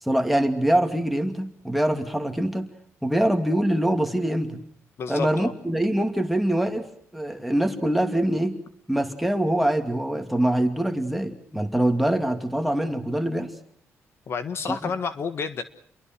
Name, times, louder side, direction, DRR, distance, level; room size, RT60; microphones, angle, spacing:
voice 1, 0.0-2.7 3.0-4.6 5.1-6.9 7.1-8.5 8.9-13.5 14.7-14.9, right 1 dB, ahead, 5 dB, 2.6 m, -24 dB
voice 2, 5.0-5.5 14.3-15.6, left 5 dB, 50° left, 10 dB, 1.5 m, -30 dB
29.0 x 23.0 x 6.2 m, 0.64 s
cardioid pair, 135°, 5 cm